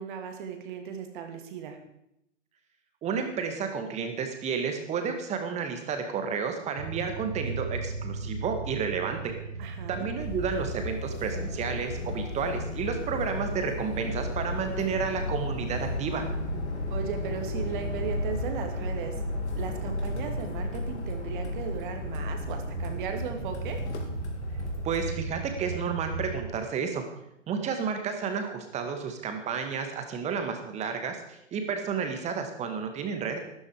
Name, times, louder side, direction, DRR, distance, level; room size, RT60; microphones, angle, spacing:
voice 1, 0.0-1.8 9.6-10.0 16.9-19.1 19.6-23.8, right 7 dB, 40° right, 5 dB, 2.6 m, -36 dB
voice 2, 3.0-9.3 9.9-16.3 24.8-27.0 27.5-33.4, right 6 dB, 20° right, 6 dB, 2.0 m, -31 dB
sound 1, 6.8-26.5, right 3 dB, 85° right, 1.7 m, -38 dB
sound 2, 10.2-25.1, left 2 dB, 60° left, 3.4 m, -34 dB
13.5 x 13.0 x 5.0 m, 0.80 s
figure-of-eight pair, 120°, 38 cm